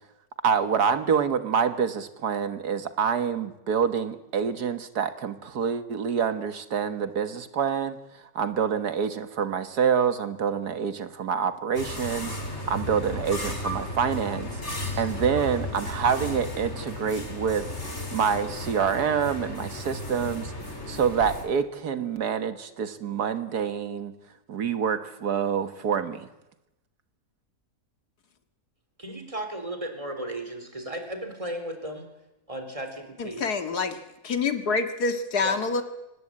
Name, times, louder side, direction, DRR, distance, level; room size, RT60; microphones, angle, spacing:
voice 1, 0.4-8.0 8.4-14.5 15.0-17.7 18.1-20.5 20.9-24.1 24.5-26.3, right 7 dB, 85° right, 10 dB, 2.0 m, -26 dB
sound 1, 11.7-21.4, left 1 dB, 45° left, 4.1 m, -34 dB
voice 2, 29.0-32.1 32.5-33.5 35.4-35.6, right 1 dB, 20° right, 6 dB, 3.7 m, -35 dB
voice 3, 33.2-34.0 34.2-35.8, left 4 dB, 80° left, 8 dB, 2.4 m, -26 dB
24.5 x 19.0 x 8.8 m, 0.94 s
omnidirectional pair, 1.6 m